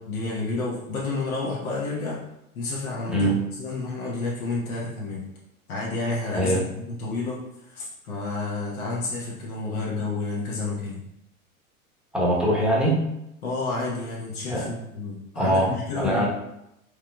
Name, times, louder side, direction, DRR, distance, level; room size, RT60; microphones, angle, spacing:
voice 1, 0.0-2.2 2.5-5.2 5.7-11.0 13.4-16.3, left 3 dB, 75° left, -5 dB, 1.3 m, -30 dB
voice 2, 3.1-3.4 6.4-6.6 12.1-13.1 14.5-14.6 15.4-16.3, right 1 dB, ahead, -5 dB, 1.0 m, -22 dB
4.7 x 3.2 x 2.3 m, 0.84 s
hypercardioid pair, 95°, 44 cm